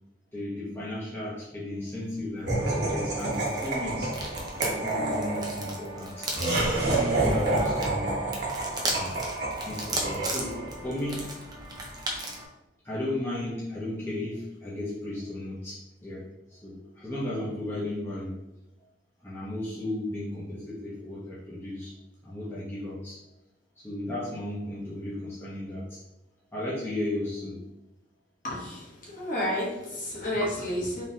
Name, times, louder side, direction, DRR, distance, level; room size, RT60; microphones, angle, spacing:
voice 1, 0.3-4.1 4.5-6.3 6.7-8.1 8.9-9.2 9.6-10.6 10.8-11.3 12.8-16.2 16.5-18.3 19.2-21.9 22.2-23.2 23.8-26.0 26.5-27.6, left 1 dB, 15° left, -9 dB, 0.8 m, -35 dB
Laughter, 2.5-10.8, right 2 dB, 60° right, 1.2 m, -29 dB
sound 1, 2.6-12.5, right 1 dB, 20° right, 0.6 m, -36 dB
voice 2, 28.4-31.0, left 1 dB, 45° left, -6 dB, 1.2 m, -31 dB
3.8 x 3.0 x 2.8 m, 0.95 s
head